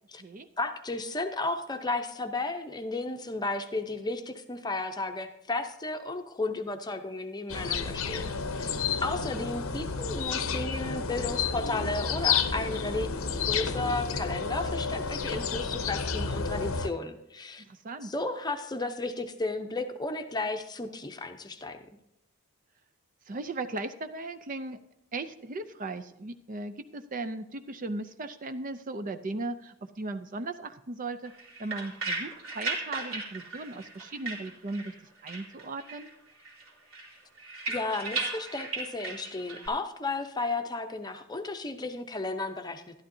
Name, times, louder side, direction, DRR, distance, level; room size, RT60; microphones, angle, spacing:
voice 1, 0.6-8.7 9.0-13.1 13.4-17.6 18.0-21.8 37.7-43.0, left 2 dB, 20° left, 6 dB, 0.7 m, -33 dB
sound 1, 7.5-16.9, left 5 dB, 65° left, 0.8 m, -31 dB
voice 2, 17.6-18.1 23.3-24.8 25.1-31.3 31.6-34.9 35.2-36.1, right 2 dB, 35° right, 10 dB, 0.5 m, -37 dB
sound 2, 31.3-35.0 35.3-36.1 36.4-39.7, right 3 dB, 70° right, 2.9 m, -36 dB
12.0 x 12.0 x 2.7 m, 0.83 s
head